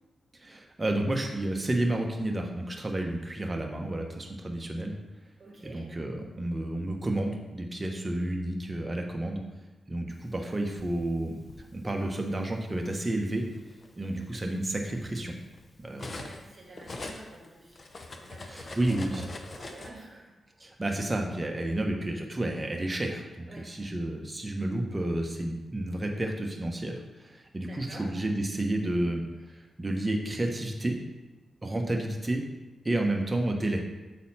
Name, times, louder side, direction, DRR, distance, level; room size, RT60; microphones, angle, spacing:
voice 1, 0.4-5.0 5.6-9.4 9.9-11.4 11.7-13.5 14.0-15.3 15.8-16.2 18.5-19.2 20.6-29.2 29.8-31.0 31.6-32.4 32.8-33.8, right 1 dB, 25° right, 2 dB, 1.1 m, -31 dB
voice 2, 5.4-5.9 14.0-14.3 16.2-17.8 18.1-20.3 23.5-23.8 27.6-28.1, right 2 dB, 50° right, -3 dB, 1.5 m, -49 dB
Cutlery silverware, 10.4-11.7 12.6-12.8 13.2-16.5 16.7-19.9, left 2 dB, 45° left, 0.8 m, -43 dB
7.7 x 4.0 x 4.2 m, 1.1 s
cardioid pair, 70°, 0 cm